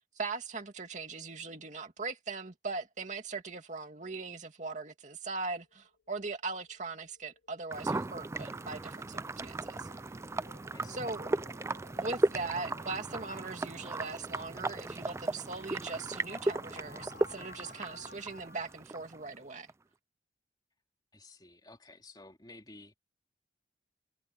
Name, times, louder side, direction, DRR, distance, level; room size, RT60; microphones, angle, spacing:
voice 1, 0.2-9.9 10.9-11.3 12.0-19.7, right 4 dB, 45° right, 2.5 m, -40 dB
sound 1, 5.6-18.8, left 3 dB, 90° left, 4.7 m, -57 dB
sound 2, 7.7-19.7, right 2 dB, 15° right, 0.3 m, -36 dB
voice 2, 10.7-11.1 21.1-22.9, left 2 dB, 25° left, 3.0 m, -53 dB
head